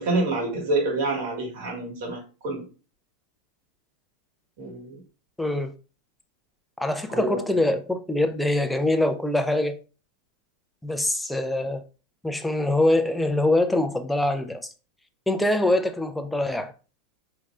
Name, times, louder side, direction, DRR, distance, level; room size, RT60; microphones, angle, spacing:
voice 1, 0.0-2.6 4.6-5.0 7.1-7.4, right 2 dB, 60° right, 1.8 m, -27 dB
voice 2, 5.4-5.7 6.8-9.8 10.8-11.8 12.2-14.6 15.3-16.7, left 1 dB, 5° left, 0.4 m, -24 dB
5.3 x 3.3 x 2.4 m
supercardioid pair, 165°, 0 cm